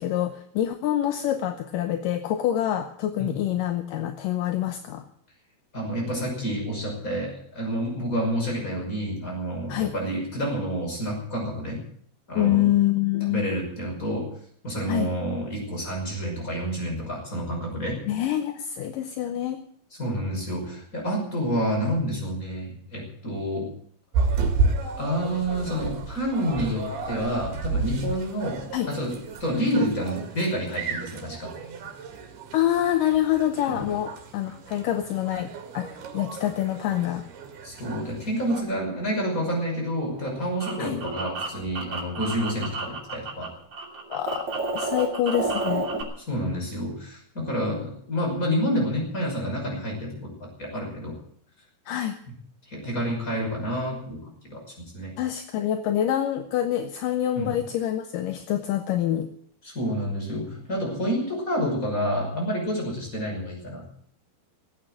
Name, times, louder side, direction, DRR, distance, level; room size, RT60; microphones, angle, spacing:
voice 1, 0.0-5.0 9.7-9.9 12.4-13.5 14.9-15.1 18.1-19.6 28.7-28.9 32.5-35.9 36.1-37.3 40.8-41.0 44.1-44.5 44.7-45.9 51.9-52.1 55.2-59.3, left 12 dB, 75° left, 7 dB, 2.2 m, -26 dB
voice 2, 5.7-11.8 12.3-12.7 13.3-14.3 14.6-18.0 20.0-23.7 25.0-31.5 33.7-33.8 37.6-43.6 46.2-51.2 52.7-54.6 54.9-55.1 57.4-57.6 59.6-63.9, equal, 20° left, -1 dB, 6.0 m, -29 dB
sound 1, 24.1-38.6, right 4 dB, 75° right, 4.0 m, -32 dB
sound 2, 40.1-43.5 43.7-46.0, right 3 dB, 40° right, 3.8 m, -31 dB
18.0 x 8.8 x 8.9 m, 0.62 s
omnidirectional pair, 4.5 m